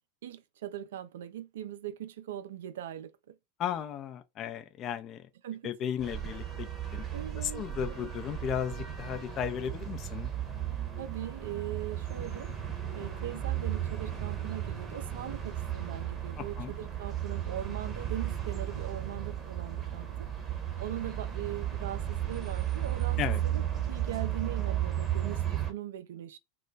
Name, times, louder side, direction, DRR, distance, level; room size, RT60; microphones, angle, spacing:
voice 1, 0.2-3.4 5.4-5.7 7.1-8.1 11.0-12.5 12.9-20.3 20.8-26.4, right 11 dB, 75° right, 0.3 m, -40 dB
voice 2, 3.6-5.3 5.6-7.1 7.4-10.3 16.4-16.7 23.2-23.4, left 9 dB, 40° left, 0.5 m, -35 dB
sound 1, 6.0-25.7, right 11 dB, 25° right, 0.8 m, -34 dB
2.2 x 2.1 x 3.8 m
hypercardioid pair, 90°, 0 cm